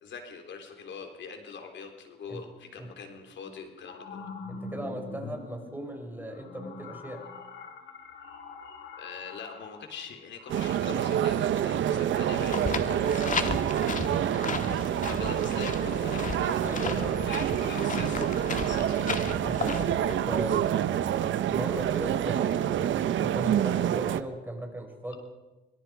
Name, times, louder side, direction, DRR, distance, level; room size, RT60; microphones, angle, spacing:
voice 1, 0.0-4.2 9.0-13.7 15.1-18.3 18.6-19.1, left 5 dB, 65° left, 5 dB, 3.5 m, -43 dB
sound 1, 2.6-2.7 3.4-12.0, left 4 dB, 85° left, 4.7 m, -45 dB
voice 2, 4.5-7.2 16.6-17.5 19.4-21.2 21.5-25.2, right 1 dB, 10° right, 2 dB, 5.6 m, -38 dB
sound 2, 10.5-24.2, right 10 dB, 75° right, 1.1 m, -27 dB
sound 3, 12.3-20.7, left 5 dB, 40° left, 2.2 m, -35 dB
25.0 x 23.5 x 4.8 m, 1.1 s
cardioid pair, 90°, 20 cm